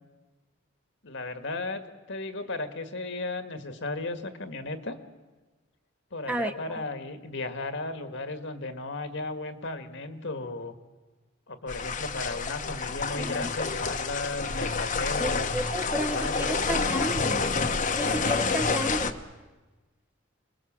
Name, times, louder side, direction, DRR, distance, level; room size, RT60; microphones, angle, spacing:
voice 1, 1.0-5.0 6.1-10.7 11.5-17.5, left 2 dB, 65° left, 9 dB, 1.8 m, -35 dB
sound 1, 11.7-19.1, left 4 dB, 40° left, 1.1 m, -28 dB
voice 2, 13.2-13.5 15.2-17.4 17.9-19.2, right 1 dB, 5° right, 6 dB, 0.9 m, -32 dB
27.0 x 21.0 x 7.5 m, 1.2 s
head